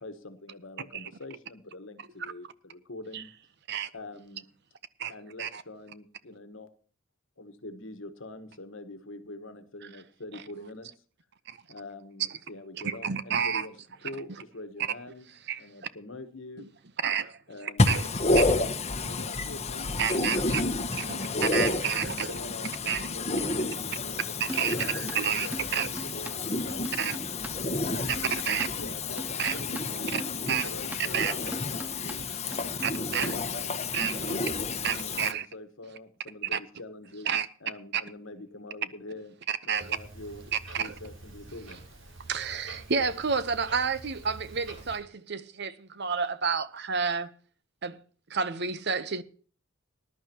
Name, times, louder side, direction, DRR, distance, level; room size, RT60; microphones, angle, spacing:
voice 1, 0.0-3.3 3.9-4.5 5.1-6.7 7.4-10.9 11.7-13.8 14.0-15.3 15.6-16.7 17.5-18.0 18.4-18.6 19.1-20.1 21.0-21.7 22.0-24.4 24.8-26.8 27.8-28.3 28.8-32.3 33.3-33.7 34.4-37.3 37.6-39.4 39.6-41.9, left 2 dB, 70° left, 1.3 m, -45 dB
voice 2, 12.7-13.7 15.5-15.6 17.0-17.4 17.9-18.0 20.0-20.6 21.1-21.2 21.5-22.3 22.9-23.1 24.4-25.9 27.0-27.2 28.1-28.7 29.4-29.6 30.1-30.2 30.5-30.7 31.0-31.4 32.8-33.4 33.9-34.4 34.8-35.5 36.5-36.6 37.3-37.5 37.9-38.0 39.5-40.0 40.5-40.9 42.3-47.3 47.8-48.0 48.3-49.2, right 7 dB, 55° right, 0.8 m, -30 dB
voice 3, 17.8-35.3, left 3 dB, 30° left, 1.3 m, -30 dB
sound 1, 24.5-28.7 29.0-31.0 31.4-32.2 32.5-33.3, equal, 10° right, 0.5 m, -41 dB
Clock, 39.7-45.0, right 2 dB, 90° right, 7.8 m, -47 dB
20.0 x 11.5 x 2.9 m
head